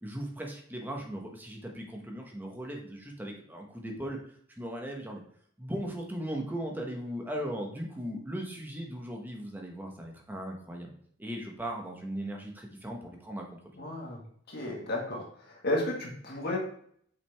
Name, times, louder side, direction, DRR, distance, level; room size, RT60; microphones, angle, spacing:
voice 1, 0.0-4.2 4.6-5.2 5.6-10.9 11.2-13.6, right 1 dB, 10° right, 1 dB, 1.0 m, -38 dB
voice 2, 13.8-14.2 14.5-15.2 15.6-16.6, left 1 dB, 55° left, -1 dB, 1.6 m, -32 dB
5.9 x 5.1 x 3.4 m, 0.63 s
head